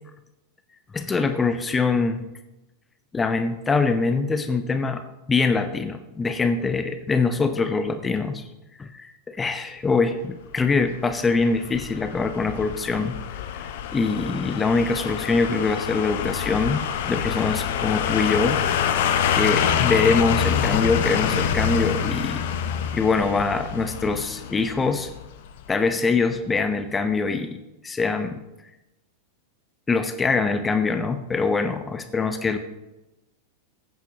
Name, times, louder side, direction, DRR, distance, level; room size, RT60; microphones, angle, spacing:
voice 1, 0.9-2.2 3.1-5.0 5.3-8.4 8.8-13.2 13.5-18.6 19.3-22.4 22.9-25.1 25.7-28.4 29.9-32.6, left 4 dB, 15° left, 8 dB, 0.9 m, -24 dB
sound 1, 10.7-25.6 25.9-26.0, left 8 dB, 55° left, 0.8 m, -26 dB
16.0 x 8.7 x 2.9 m, 0.98 s
figure-of-eight pair, 90°, 0 cm